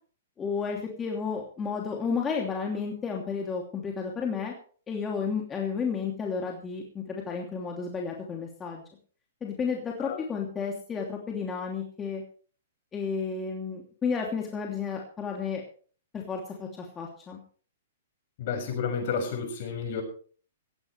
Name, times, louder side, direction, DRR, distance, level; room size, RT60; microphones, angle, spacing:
voice 1, 0.4-4.5 4.9-8.8 9.4-12.2 12.9-15.6 16.1-17.4, left 5 dB, 20° left, 0 dB, 2.9 m, -32 dB
voice 2, 18.4-20.0, left 6 dB, 55° left, 3 dB, 6.9 m, -31 dB
17.0 x 15.5 x 3.3 m, 0.43 s
hypercardioid pair, 130°, 0 cm